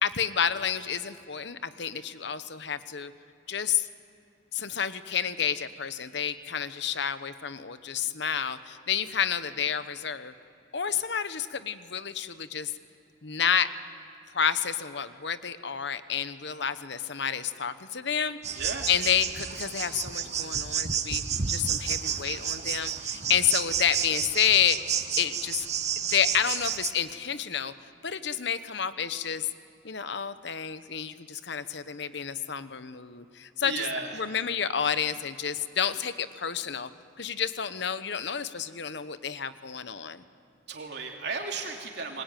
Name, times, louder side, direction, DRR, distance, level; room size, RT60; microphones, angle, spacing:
voice 1, 0.0-3.1 3.5-3.9 4.5-10.3 10.7-12.7 13.2-13.7 14.3-18.6 18.9-21.2 21.5-24.8 25.2-25.7 26.1-27.7 28.0-29.5 29.8-33.9 34.1-36.9 37.2-40.2, left 8 dB, 65° left, 12 dB, 1.0 m, -29 dB
sound 1, 18.4-26.9, right 8 dB, 35° right, 1.0 m, -31 dB
voice 2, 18.6-18.9 33.6-34.2 40.7-42.2, right 4 dB, 60° right, 1 dB, 3.1 m, -34 dB
28.0 x 20.5 x 9.2 m, 2.7 s
head